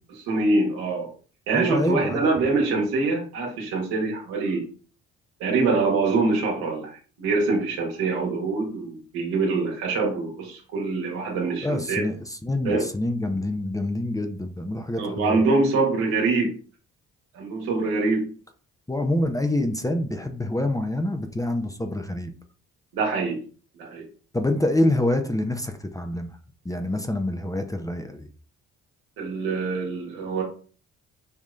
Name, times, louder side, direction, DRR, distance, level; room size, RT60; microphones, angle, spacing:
voice 1, 0.3-1.1 1.5-4.6 5.4-12.0 12.6-12.9 14.9-16.6 17.3-18.3 22.9-23.4 23.8-24.0 29.2-30.4, right 3 dB, 80° right, -1 dB, 1.5 m, -24 dB
voice 2, 1.5-2.3 11.6-15.5 18.9-22.3 24.3-26.3 26.6-28.3, left 1 dB, 10° left, 6 dB, 0.7 m, -26 dB
5.6 x 3.0 x 2.5 m, 0.40 s
hypercardioid pair, 50°, 36 cm